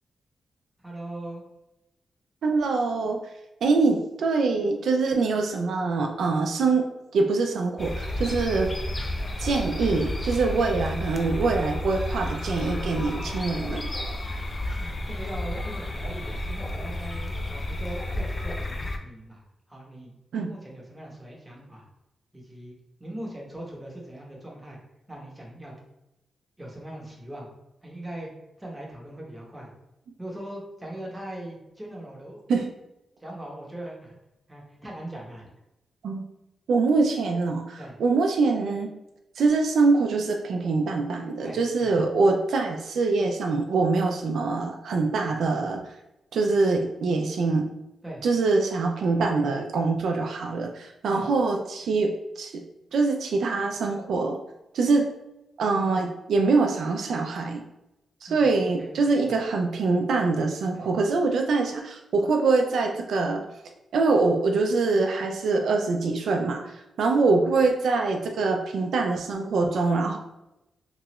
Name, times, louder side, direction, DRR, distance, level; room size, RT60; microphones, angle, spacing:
voice 1, 0.8-1.5 8.9-9.0 10.6-10.7 14.3-14.5 14.8-20.1 20.5-21.8 22.3-22.7 23.0-24.8 25.1-25.7 26.6-27.5 27.8-28.3 28.6-29.7 30.2-32.4 33.2-34.1 34.5-35.5 37.8-38.0 41.4-41.9 48.0-48.2 51.1-51.3 58.3-58.9 59.2-59.3 60.7-60.9, right 1 dB, 10° right, -3 dB, 0.7 m, -40 dB
voice 2, 2.4-3.2 3.6-6.8 7.1-8.7 9.4-13.9 20.3-20.5 32.5-32.7 36.0-36.2 36.7-38.9 39.4-45.8 46.3-47.7 48.2-52.6 52.9-54.4 54.7-55.1 55.6-57.6 58.2-63.4 63.9-70.2, right 3 dB, 75° right, 2 dB, 0.3 m, -24 dB
sound 1, 7.8-19.0, left 1 dB, 20° left, 0.3 m, -31 dB
2.9 x 2.3 x 2.9 m, 0.90 s
wide cardioid pair, 140°, 0 cm